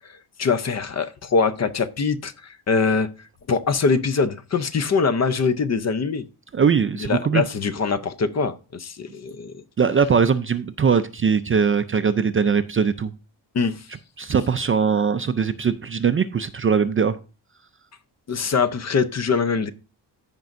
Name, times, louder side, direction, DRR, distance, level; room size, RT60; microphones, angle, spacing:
voice 1, 0.4-3.1 3.5-6.2 7.0-9.6 13.5-13.7 18.3-19.7, left 5 dB, 40° left, 0.6 m, -23 dB
voice 2, 6.5-7.4 9.8-13.1 14.2-17.2, right 6 dB, 30° right, 0.4 m, -21 dB
15.0 x 5.3 x 2.5 m
wide cardioid pair, 150°, 42 cm